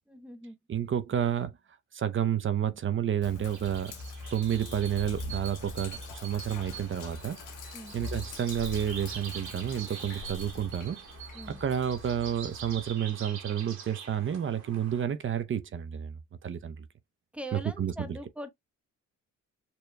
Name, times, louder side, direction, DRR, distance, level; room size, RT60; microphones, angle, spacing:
voice 1, 0.1-0.6 7.7-7.9 11.3-11.6 17.3-18.5, right 1 dB, 5° right, 1.0 m, -41 dB
voice 2, 0.7-1.5 1.9-4.0 4.3-7.4 7.9-11.0 11.6-16.9 17.5-18.2, right 9 dB, 40° right, 0.7 m, -30 dB
Sink (filling or washing), 3.2-12.9, left 3 dB, 85° left, 1.2 m, -43 dB
sound 1, 3.5-15.0, right 7 dB, 70° right, 2.3 m, -45 dB
6.8 x 2.9 x 2.2 m
cardioid pair, 90°, 30 cm